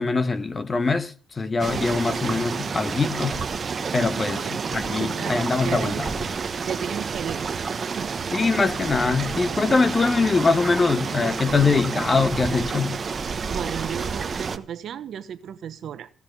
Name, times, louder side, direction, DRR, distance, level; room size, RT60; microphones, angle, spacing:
voice 1, 0.0-3.5 3.9-6.1 8.3-13.0, left 4 dB, 30° left, 1.4 m, -23 dB
sound 1, 1.6-14.6, right 5 dB, 40° right, 1.1 m, -29 dB
voice 2, 4.1-6.1 6.6-8.2 13.5-16.1, right 9 dB, 65° right, 1.1 m, -35 dB
16.0 x 6.8 x 8.1 m
cardioid pair, 90°, 0 cm